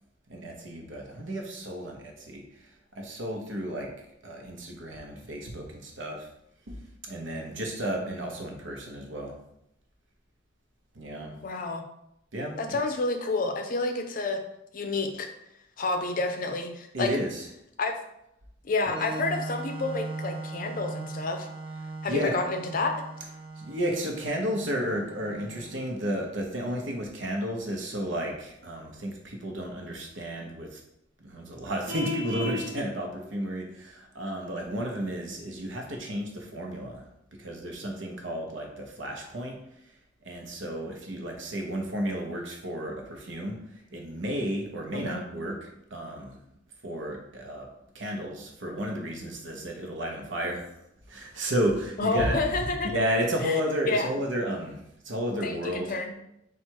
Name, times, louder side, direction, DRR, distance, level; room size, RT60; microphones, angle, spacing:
voice 1, 0.3-3.9 4.2-6.3 6.7-9.3 10.9-11.3 12.3-12.8 16.9-17.5 22.1-22.3 23.6-30.8 31.2-37.0 37.4-39.6 40.2-43.6 43.9-46.4 46.8-47.7 47.9-50.7 51.1-52.4 52.8-55.9, equal, 75° right, 1 dB, 0.9 m, -32 dB
voice 2, 11.4-11.8 12.6-14.4 14.7-15.3 15.8-17.2 17.8-18.0 18.6-21.5 22.0-22.9 44.9-45.3 52.0-52.9 53.4-53.6 53.9-54.1 55.4-56.1, left 3 dB, 45° left, 6 dB, 0.5 m, -29 dB
Organ, 18.8-26.4, right 3 dB, 25° right, 0.4 m, -39 dB
Vehicle horn car horn honking, 31.9-32.7, left 1 dB, 10° right, 1.1 m, -32 dB
4.3 x 2.4 x 4.5 m, 0.81 s
head